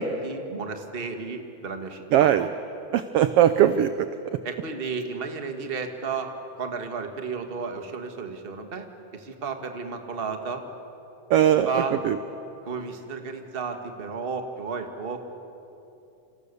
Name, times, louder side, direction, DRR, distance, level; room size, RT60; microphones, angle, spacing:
voice 1, 0.0-2.5 4.4-10.6 11.6-12.0 12.6-15.2, right 5 dB, 25° right, 5 dB, 1.4 m, -33 dB
voice 2, 2.1-2.5 2.9-4.1 11.3-11.7 12.0-12.2, right 10 dB, 75° right, 11 dB, 1.4 m, -19 dB
29.0 x 27.0 x 6.8 m, 2.9 s
omnidirectional pair, 3.3 m